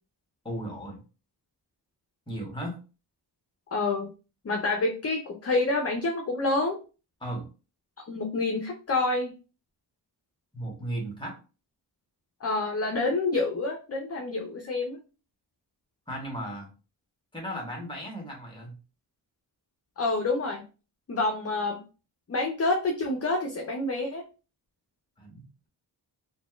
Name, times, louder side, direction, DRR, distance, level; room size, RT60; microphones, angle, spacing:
voice 1, 0.4-1.0 2.3-2.8 7.2-7.5 10.5-11.4 16.1-16.7 17.3-18.7 25.2-25.7, right 1 dB, 10° left, 0 dB, 1.2 m, -36 dB
voice 2, 3.7-4.1 4.4-6.8 8.1-9.3 12.4-15.0 20.0-20.6 21.1-21.8 22.3-24.2, left 2 dB, 35° left, 2 dB, 0.6 m, -27 dB
3.9 x 2.2 x 2.3 m, 0.33 s
wide cardioid pair, 95°, 42 cm